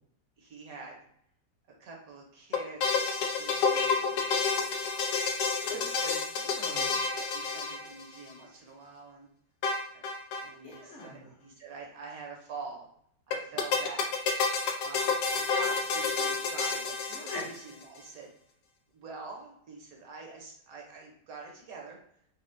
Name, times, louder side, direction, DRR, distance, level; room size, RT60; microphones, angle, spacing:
voice 1, 0.4-1.0 1.8-3.0 3.4-5.2 5.6-5.8 7.1-9.3 9.9-10.0 10.4-12.9 13.3-14.1 14.8-17.0 17.3-18.3 18.9-22.0, right 4 dB, 70° right, 0 dB, 1.1 m, -46 dB
sound 1, 2.5-8.3 9.6-10.5 10.7-10.8 11.0-11.1 13.3-17.8, left 5 dB, 80° left, 1.1 m, -29 dB
voice 2, 5.6-7.0 10.6-11.3 17.1-17.5, left 2 dB, 50° left, -4 dB, 1.0 m, -42 dB
4.2 x 2.0 x 2.5 m, 0.68 s
omnidirectional pair, 1.7 m